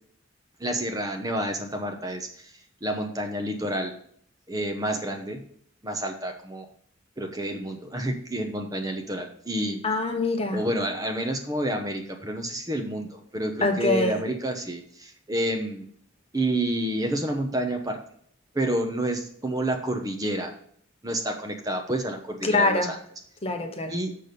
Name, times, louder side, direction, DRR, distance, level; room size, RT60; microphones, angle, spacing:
voice 1, 0.6-2.3 2.8-3.9 4.5-5.4 5.8-6.7 7.2-9.8 10.5-15.9 16.3-18.0 18.5-20.5 21.0-23.0 23.9-24.1, right 1 dB, 20° right, 4 dB, 0.9 m, -29 dB
voice 2, 9.8-10.6 13.6-14.2 22.4-22.9 23.4-23.9, left 2 dB, 30° left, 5 dB, 0.9 m, -24 dB
6.6 x 6.2 x 5.2 m, 0.62 s
head